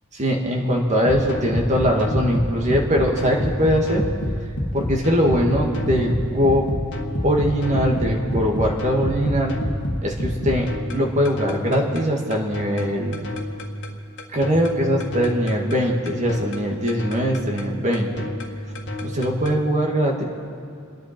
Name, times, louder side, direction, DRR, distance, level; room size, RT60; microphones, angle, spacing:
voice 1, 0.1-4.0 4.7-6.7 7.2-9.6 10.0-13.2 14.3-18.3 19.0-20.2, equal, 35° right, 0 dB, 2.0 m, -21 dB
sound 1, 1.0-19.6, equal, 55° left, 1.8 m, -29 dB
29.0 x 11.0 x 4.5 m, 2.4 s
head